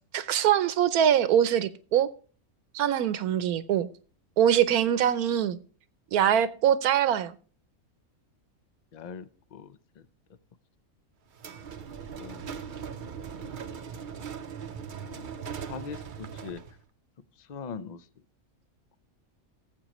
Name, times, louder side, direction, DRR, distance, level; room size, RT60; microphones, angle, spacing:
voice 1, 0.1-2.1 2.7-3.9 4.4-5.6 6.1-7.3, right 9 dB, 80° right, 1.2 m, -23 dB
voice 2, 8.9-9.8 12.2-12.5 15.0-15.3 15.7-16.6 17.5-18.0, left 6 dB, 75° left, 0.4 m, -41 dB
sound 1, 11.3-16.8, right 7 dB, 50° right, 0.6 m, -39 dB
18.5 x 7.6 x 3.0 m
omnidirectional pair, 1.5 m